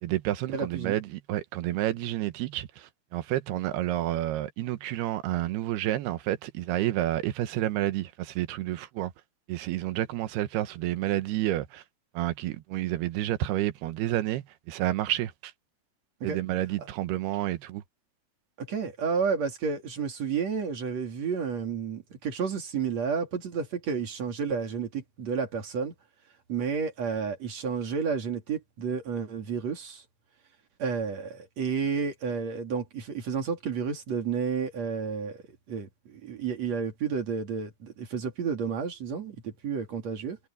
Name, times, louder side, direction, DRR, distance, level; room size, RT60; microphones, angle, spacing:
voice 1, 0.0-9.1 9.5-11.8 12.1-15.5 16.2-17.8, right 14 dB, 85° right, 3.0 m, -30 dB
voice 2, 0.5-1.0 16.2-16.4 16.8-16.9 18.6-25.9 26.5-30.0 30.8-35.4 35.7-40.4, right 6 dB, 45° right, 3.6 m, -31 dB
omnidirectional pair, 4.6 m